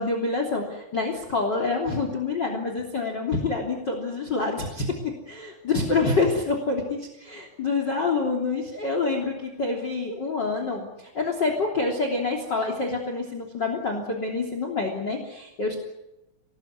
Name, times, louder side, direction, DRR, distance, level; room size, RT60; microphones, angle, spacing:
voice 1, 0.0-4.9 5.3-15.7, left 3 dB, 30° left, 4 dB, 3.6 m, -27 dB
28.5 x 19.5 x 9.7 m, 0.92 s
omnidirectional pair, 4.5 m